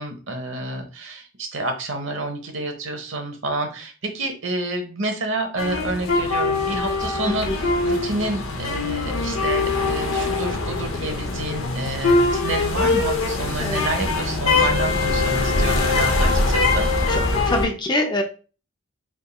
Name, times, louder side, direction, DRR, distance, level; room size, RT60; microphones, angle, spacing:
voice 1, 0.0-16.9, right 2 dB, 65° right, 4 dB, 0.9 m, -29 dB
sound 1, 5.6-17.7, left 3 dB, 80° left, 0.8 m, -22 dB
voice 2, 7.2-7.6 13.6-13.9 17.1-18.2, left 1 dB, 20° left, 4 dB, 0.4 m, -25 dB
4.0 x 3.6 x 2.3 m, 0.35 s
head